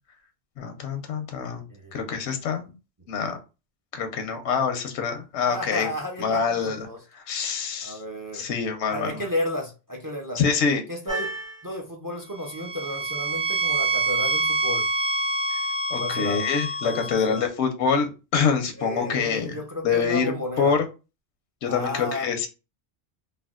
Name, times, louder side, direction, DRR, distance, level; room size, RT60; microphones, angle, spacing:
voice 1, 0.6-1.6 1.9-2.7 3.1-3.4 3.9-5.9 6.2-6.9 7.1-8.0 8.3-9.2 10.3-10.8 15.9-19.6 19.8-20.9 21.6-22.5, left 6 dB, 90° left, 6 dB, 0.9 m, -25 dB
voice 2, 1.7-2.3 5.5-7.0 7.8-10.4 10.9-11.3 11.6-14.9 16.0-16.4 16.8-17.4 18.8-20.7 21.6-22.3, left 1 dB, 30° right, 2 dB, 0.4 m, -33 dB
sound 1, 11.1-11.6 12.4-17.5, right 2 dB, 80° right, 1.4 m, -27 dB
3.4 x 2.2 x 2.3 m, 0.30 s
omnidirectional pair, 1.1 m